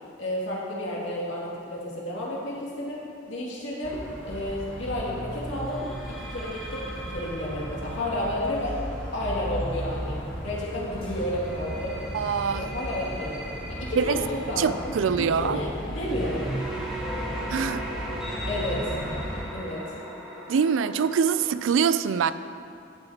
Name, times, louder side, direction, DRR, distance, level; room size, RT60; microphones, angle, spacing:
voice 1, 0.2-4.0 4.3-8.7 9.1-10.2 10.4-12.0 12.5-16.5 18.5-18.9 19.5-19.9, left 1 dB, 80° left, -6 dB, 2.3 m, -31 dB
sound 1, 3.8-19.4, equal, 25° left, 2.1 m, -36 dB
sound 2, 3.9-4.1 5.6-10.4 11.2-21.7, equal, 5° right, 2.2 m, -39 dB
voice 2, 12.1-12.7 14.0-14.2 14.6-15.6 17.5-17.9 20.5-22.3, right 6 dB, 90° right, 13 dB, 0.4 m, -24 dB
14.0 x 7.9 x 2.9 m, 2.5 s
head